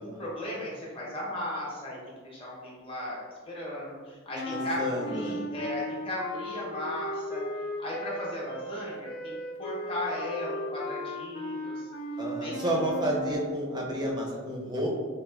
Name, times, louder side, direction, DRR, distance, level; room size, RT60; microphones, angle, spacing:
voice 1, 0.0-2.0 2.2-3.2 3.5-4.8 5.1-7.4 7.8-11.9 12.4-12.8, left 1 dB, 25° left, -5 dB, 0.9 m, -36 dB
sound 1, 4.3-13.5, left 1 dB, 50° left, 0.4 m, -36 dB
voice 2, 4.5-5.5 12.2-14.9, right 1 dB, 20° right, -2 dB, 0.6 m, -31 dB
4.1 x 2.4 x 2.3 m, 1.5 s
head